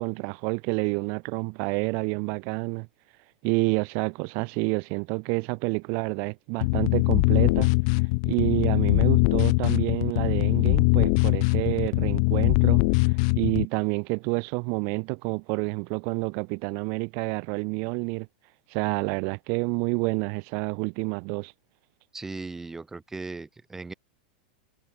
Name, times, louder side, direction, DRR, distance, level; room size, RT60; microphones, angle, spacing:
voice 1, 0.0-2.9 3.4-7.7 8.0-18.3 18.7-21.5, right 38 dB, 40° right, 2.5 m, -29 dB
sound 1, 6.6-13.6, left 33 dB, 45° left, 0.9 m, -22 dB
voice 2, 22.1-23.9, right 3 dB, 10° right, 5.2 m, -37 dB
supercardioid pair, 160°, 5 cm